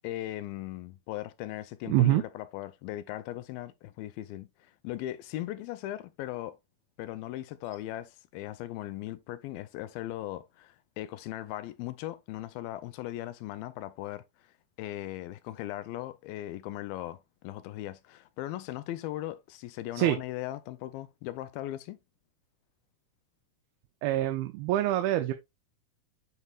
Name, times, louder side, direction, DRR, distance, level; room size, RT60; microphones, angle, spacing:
voice 1, 0.0-6.6 7.0-22.0, left 14 dB, 85° left, 2.4 m, -38 dB
voice 2, 1.9-2.2 20.0-20.2 24.0-25.3, right 14 dB, 85° right, 2.5 m, -25 dB
9.6 x 4.6 x 2.4 m
omnidirectional pair, 4.2 m